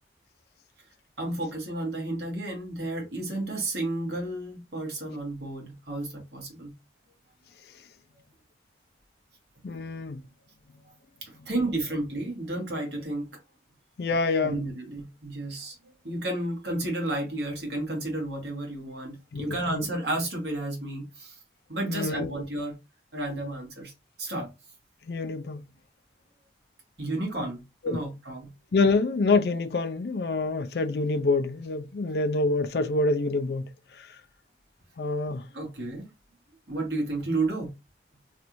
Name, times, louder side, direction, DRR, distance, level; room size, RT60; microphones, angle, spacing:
voice 1, 1.2-6.7 11.2-13.3 14.4-21.3 21.7-22.7 23.1-23.9 24.2-24.5 27.0-28.5 35.5-36.1 36.7-37.7, right 2 dB, 75° right, 1.5 m, -32 dB
voice 2, 9.6-10.2 14.0-14.6 19.3-19.9 21.9-22.4 25.0-25.7 27.8-28.0 28.7-34.2 35.0-35.5, left 3 dB, 65° left, 0.4 m, -27 dB
3.2 x 2.5 x 3.0 m
head